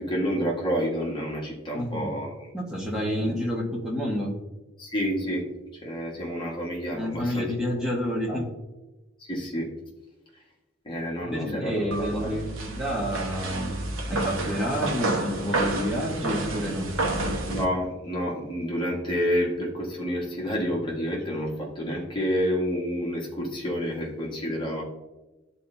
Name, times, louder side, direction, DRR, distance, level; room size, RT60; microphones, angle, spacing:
voice 1, 0.0-2.5 4.8-5.4 5.8-7.9 8.3-8.4 9.2-9.7 10.8-12.4 17.3-24.8, equal, 25° left, -3 dB, 1.5 m, -29 dB
voice 2, 1.7-2.1 2.5-4.4 6.9-8.5 11.2-13.7 14.1-16.9, equal, 5° right, -3 dB, 1.4 m, -29 dB
sound 1, 11.9-17.6, right 2 dB, 90° right, 1.0 m, -30 dB
12.0 x 4.3 x 2.7 m, 1.1 s
head